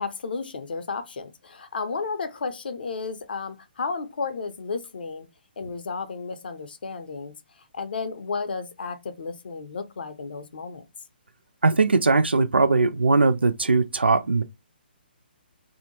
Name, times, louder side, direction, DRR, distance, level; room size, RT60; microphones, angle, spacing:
voice 1, 0.0-5.3 5.6-7.3 7.7-10.8, left 4 dB, 65° left, 0.5 m, -33 dB
voice 2, 11.6-14.4, right 3 dB, 90° right, 0.4 m, -20 dB
2.6 x 2.0 x 2.9 m
figure-of-eight pair, 135°, 6 cm